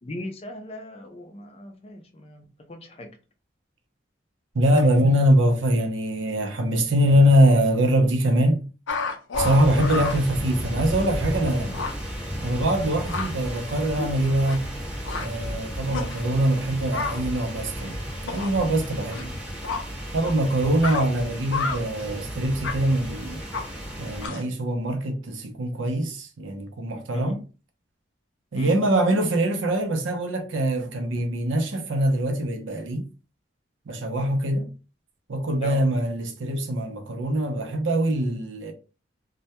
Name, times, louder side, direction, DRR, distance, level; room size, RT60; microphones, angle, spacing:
voice 1, 0.0-3.1 19.1-19.4 27.1-27.4 28.6-28.8 35.6-35.8, left 1 dB, 30° left, 0.4 m, -38 dB
voice 2, 4.5-8.7 9.4-11.7 12.4-14.7 15.2-17.9 18.3-19.3 20.1-23.4 24.0-27.4 28.5-33.1 33.9-34.7 35.3-38.7, right 1 dB, 90° right, 0.5 m, -23 dB
sound 1, 8.9-10.2 10.9-11.0 11.4-11.5 11.7-11.9 12.8-13.3 14.0-14.8 15.0-15.3 15.9-16.2 16.9-17.2 18.2-18.5 19.1-19.2 19.6-19.8 20.2-20.3 20.8-21.1 21.5-21.8 22.6-22.7 23.5-23.6 24.2-24.5, left 4 dB, 85° left, 0.5 m, -30 dB
sound 2, 9.3-24.3, equal, 5° right, 0.8 m, -34 dB
2.2 x 2.1 x 2.8 m
head